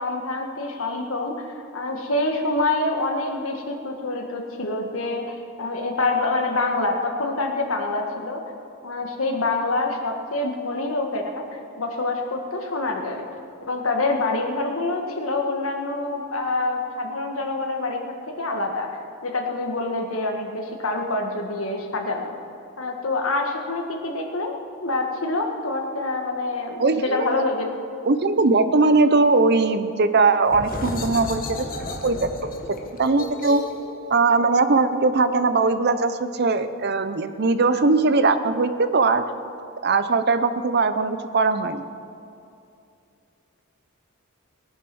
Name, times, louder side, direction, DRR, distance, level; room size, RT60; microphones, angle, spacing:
voice 1, 0.0-8.4 8.8-11.4 11.8-13.3 13.6-18.9 19.2-22.4 22.8-27.7, left 2 dB, 75° left, 3 dB, 1.7 m, -26 dB
voice 2, 26.8-27.3 28.1-31.7 32.0-32.3 32.7-33.6 34.1-39.2 39.8-41.8, right 3 dB, 50° right, 11 dB, 0.7 m, -20 dB
sound 1, 30.5-35.9, left 2 dB, 40° left, 1.4 m, -34 dB
19.0 x 9.6 x 6.2 m, 2.6 s
head